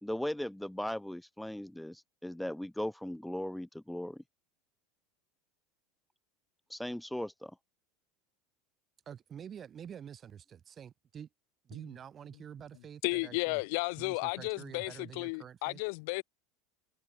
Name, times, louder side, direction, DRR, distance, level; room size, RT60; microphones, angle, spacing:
voice 1, 0.0-4.2 6.7-7.6, left 1 dB, 5° left, 0.6 m, -38 dB
voice 2, 9.0-11.3 11.6-13.6 14.0-15.8, right 8 dB, 30° right, 5.1 m, -48 dB
voice 3, 13.0-16.2, left 32 dB, 70° left, 0.4 m, -33 dB
supercardioid pair, 125°, 0 cm